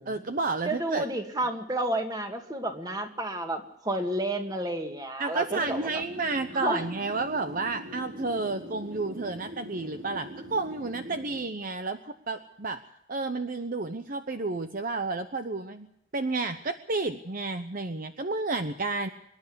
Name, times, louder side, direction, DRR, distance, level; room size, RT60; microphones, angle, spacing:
voice 1, 0.1-1.1 5.2-12.8 13.1-15.9 16.1-19.1, right 3 dB, 45° right, 8 dB, 0.9 m, -31 dB
voice 2, 0.7-6.0 6.5-6.8, right 1 dB, 20° right, 5 dB, 2.2 m, -31 dB
sound 1, 5.5-11.4, equal, 70° right, 4.4 m, -43 dB
25.5 x 11.0 x 9.7 m, 0.80 s
head